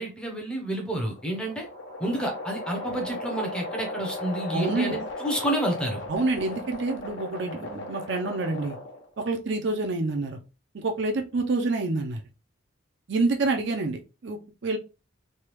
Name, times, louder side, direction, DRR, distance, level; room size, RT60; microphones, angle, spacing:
voice 1, 0.0-1.7 2.0-6.0, right 1 dB, 5° left, 1 dB, 0.7 m, -29 dB
sound 1, 0.9-9.1, left 2 dB, 60° left, 0.9 m, -36 dB
voice 2, 4.5-5.0 6.1-8.8 9.2-10.4 10.7-12.2 13.1-14.8, right 3 dB, 55° right, 3 dB, 0.5 m, -27 dB
3.3 x 2.3 x 3.0 m, 0.31 s
head